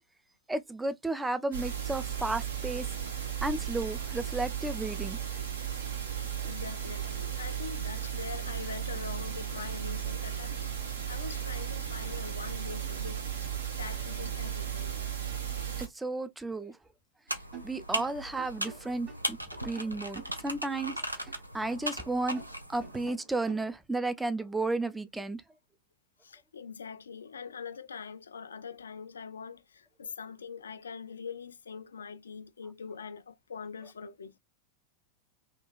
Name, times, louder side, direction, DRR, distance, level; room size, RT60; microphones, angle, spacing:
voice 1, 0.5-2.9 3.4-5.2 15.8-16.7 17.6-21.0 21.5-22.4 22.7-25.4, right 2 dB, 10° right, 0.4 m, -33 dB
sound 1, 1.5-15.9, right 9 dB, 70° right, 0.8 m, -35 dB
voice 2, 6.4-13.2 13.8-15.0 26.2-34.4, left 6 dB, 70° left, 0.3 m, -43 dB
sound 2, 17.3-23.1, right 1 dB, 85° right, 0.4 m, -38 dB
sound 3, 17.5-21.4 21.7-23.7, right 5 dB, 30° right, 1.2 m, -49 dB
3.6 x 2.2 x 2.3 m
figure-of-eight pair, 90°, 0 cm